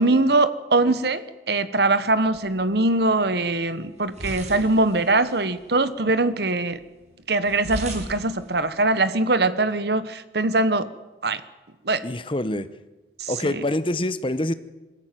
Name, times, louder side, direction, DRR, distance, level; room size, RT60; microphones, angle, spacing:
voice 1, 0.0-6.8 7.3-10.9 11.2-11.4 11.8-12.0 13.2-13.6, right 2 dB, 60° right, 13 dB, 1.2 m, -22 dB
sound 1, 2.1-9.1, equal, 40° right, 6.0 m, -40 dB
voice 2, 12.0-12.7 13.3-14.5, left 1 dB, 25° left, 14 dB, 0.9 m, -25 dB
22.0 x 15.5 x 9.2 m, 1.1 s
head